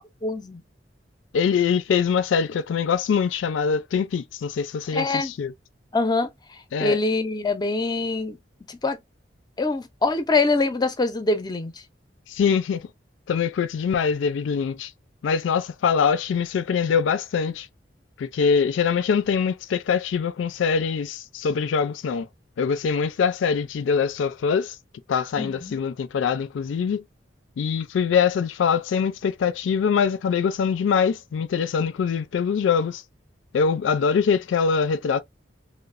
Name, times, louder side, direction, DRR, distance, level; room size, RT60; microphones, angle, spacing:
voice 1, 0.2-0.6 4.9-5.3 5.9-6.3 6.8-8.4 8.7-9.0 9.6-11.7 25.4-25.8 34.2-34.3, left 3 dB, 20° left, 0.4 m, -24 dB
voice 2, 1.3-5.5 6.7-7.0 12.3-12.9 13.3-14.9 15.2-17.7 18.2-22.3 22.6-24.8 25.1-27.0 27.6-33.0 33.5-35.2, left 6 dB, 80° left, 0.3 m, -23 dB
3.0 x 2.0 x 2.4 m
head